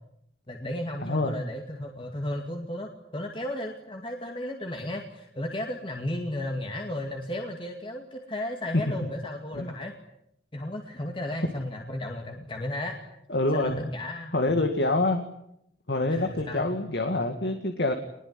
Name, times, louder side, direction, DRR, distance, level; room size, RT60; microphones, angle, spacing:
voice 1, 0.5-9.9 10.5-13.0 13.5-14.7 16.1-16.7, left 1 dB, 30° left, 2 dB, 2.4 m, -34 dB
voice 2, 1.0-1.3 8.7-8.8 9.6-9.7 13.3-13.9 14.3-15.2 15.9-17.9, left 2 dB, 70° left, 6 dB, 2.1 m, -26 dB
23.5 x 21.0 x 9.8 m, 0.79 s
head